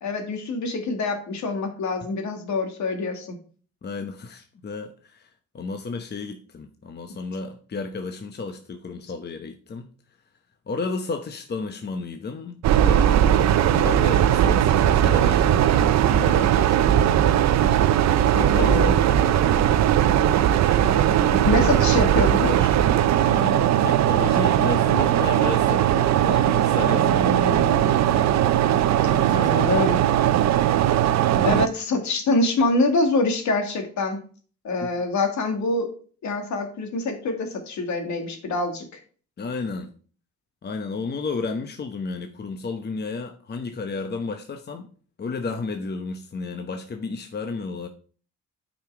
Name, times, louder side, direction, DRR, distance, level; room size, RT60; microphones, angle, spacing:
voice 1, 0.0-3.4 18.5-18.9 20.8-22.8 27.0-27.9 29.3-30.0 31.4-34.2 34.6-35.9 36.2-38.9, left 3 dB, 65° left, 2.1 m, -25 dB
voice 2, 3.8-5.3 5.5-9.9 10.7-17.4 18.3-19.9 23.1-27.4 27.8-29.7 31.3-31.7 34.8-34.9 39.4-39.9 40.6-44.9 45.2-47.9, left 4 dB, 35° left, 0.9 m, -33 dB
sound 1, 12.6-31.7, right 11 dB, 65° right, 0.6 m, -19 dB
8.8 x 5.2 x 4.8 m
cardioid pair, 90°, 30 cm